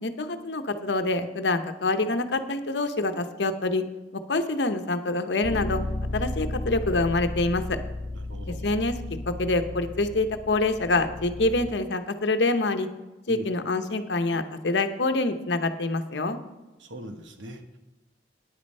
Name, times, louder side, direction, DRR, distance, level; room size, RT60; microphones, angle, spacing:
voice 1, 0.0-3.8 4.1-5.8 6.1-7.8 8.6-8.9 9.3-12.9 13.3-16.4, left 2 dB, 70° left, 9 dB, 0.9 m, -26 dB
Bass guitar, 5.4-11.7, left 2 dB, 45° left, 0.9 m, -34 dB
voice 2, 8.1-8.7 13.3-13.5 16.8-17.8, equal, 90° right, 6 dB, 1.2 m, -41 dB
9.9 x 8.7 x 5.4 m, 1.1 s
head